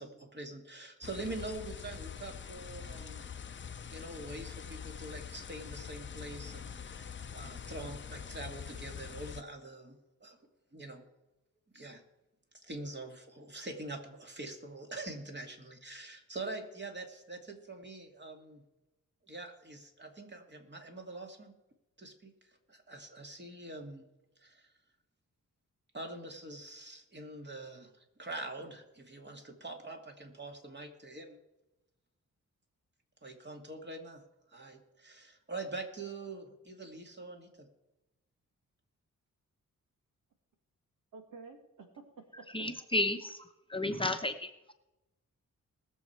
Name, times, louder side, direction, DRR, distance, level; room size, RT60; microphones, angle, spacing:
voice 1, 0.0-3.6 3.9-10.4 10.7-11.0 11.7-12.0 12.6-18.6 19.3-21.5 22.0-24.0 24.4-24.7 25.9-27.9 28.2-31.4 33.2-34.2 34.5-37.7, right 2 dB, 35° right, 3 dB, 2.6 m, -44 dB
sound 1, 1.0-9.4, left 7 dB, 35° left, 0.7 m, -44 dB
voice 2, 41.1-42.7, right 4 dB, 85° right, 5 dB, 2.1 m, -51 dB
voice 3, 42.5-44.5, left 2 dB, 15° left, 5 dB, 1.0 m, -32 dB
20.5 x 7.2 x 4.7 m, 0.95 s
cardioid pair, 75°, 32 cm